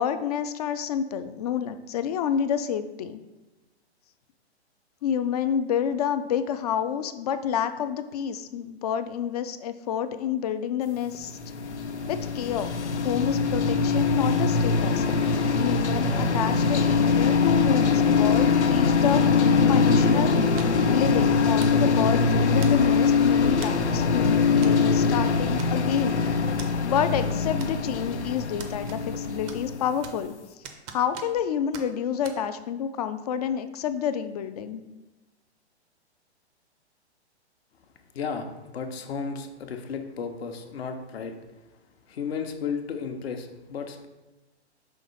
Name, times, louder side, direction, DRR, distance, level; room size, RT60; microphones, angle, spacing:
voice 1, 0.0-3.2 5.0-11.4 12.1-12.7 13.0-15.1 15.6-19.3 19.7-20.4 20.9-26.2 26.8-30.3 30.9-34.8, left 8 dB, 35° left, 11 dB, 0.4 m, -29 dB
sound 1, 11.1-30.2, left 5 dB, 85° left, 0.7 m, -22 dB
sound 2, 20.6-20.9 21.6-21.9 22.6-23.0 23.6-23.9 24.6-24.8 25.1-25.2 25.6-26.1 26.6-26.7 27.6-28.1 28.6-29.2 29.5-30.3 30.6-31.5 31.7-31.9 32.2-32.4, right 6 dB, 20° right, 0.5 m, -42 dB
voice 2, 38.1-41.3 42.1-44.1, left 5 dB, 65° left, 5 dB, 1.0 m, -33 dB
5.7 x 3.0 x 5.5 m, 1.1 s
hypercardioid pair, 125°, 34 cm